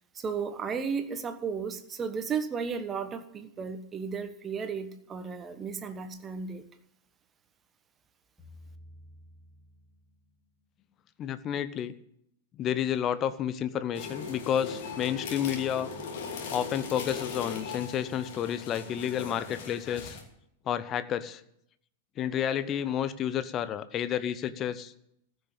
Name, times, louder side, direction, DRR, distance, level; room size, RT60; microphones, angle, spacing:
voice 1, 0.1-6.6, right 6 dB, 20° right, 10 dB, 1.3 m, -34 dB
sound 1, 8.4-10.6, left 1 dB, ahead, 4.9 m, -53 dB
voice 2, 11.2-11.9 12.6-15.9 16.5-20.2 20.7-21.4 22.2-24.9, left 9 dB, 30° left, 14 dB, 0.8 m, -30 dB
sound 2, 13.9-20.2, left 5 dB, 55° left, 2.7 m, -39 dB
14.5 x 6.5 x 9.2 m, 0.76 s
figure-of-eight pair, 95°, 0 cm